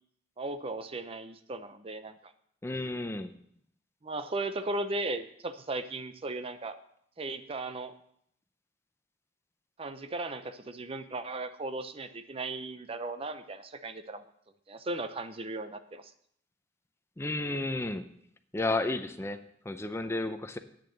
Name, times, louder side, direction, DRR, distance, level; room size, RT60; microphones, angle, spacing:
voice 1, 0.4-2.3 4.0-6.8 7.2-7.9 9.8-14.2 14.7-16.1, right 2 dB, 35° right, 10 dB, 0.6 m, -36 dB
voice 2, 2.6-3.3 17.2-18.1 18.5-20.6, left 2 dB, 15° left, 9 dB, 0.5 m, -32 dB
8.6 x 6.7 x 7.8 m, 0.69 s
head